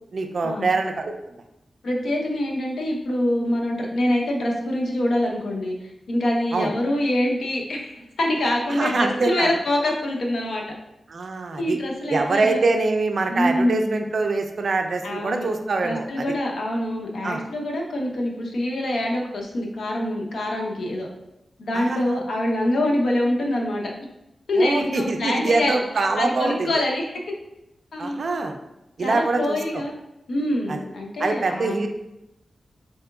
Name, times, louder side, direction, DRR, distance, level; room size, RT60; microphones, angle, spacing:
voice 1, 0.1-1.4 6.5-6.7 8.7-9.5 11.1-11.8 12.1-16.3 17.2-17.4 21.7-22.2 24.5-26.7 28.0-28.6 29.0-29.8 30.7-30.8 31.2-31.9, right 3 dB, 50° right, 5 dB, 0.4 m, -24 dB
voice 2, 1.8-10.6 11.6-12.6 13.3-14.0 15.0-15.5 15.8-21.1 21.6-23.9 24.5-25.8 26.2-27.2 27.9-28.3 29.0-29.9 30.3-31.8, left 1 dB, 75° left, -1 dB, 0.7 m, -25 dB
4.2 x 3.8 x 2.3 m, 0.91 s
wide cardioid pair, 155°, 0 cm